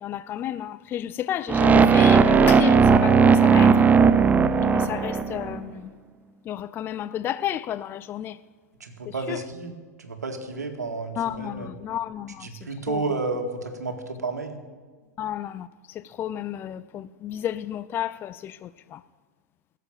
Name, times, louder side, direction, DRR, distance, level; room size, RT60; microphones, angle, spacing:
voice 1, 0.0-3.8 4.7-5.9 6.5-8.4 9.1-9.4 11.2-12.5 12.9-13.0 15.2-19.0, left 11 dB, 25° left, 0.4 m, -32 dB
sound 1, 1.5-5.6, right 5 dB, 15° right, 0.8 m, -17 dB
voice 2, 8.8-11.7 12.4-14.6, right 3 dB, 75° right, 1.9 m, -32 dB
17.5 x 7.5 x 8.8 m
figure-of-eight pair, 95°, 9 cm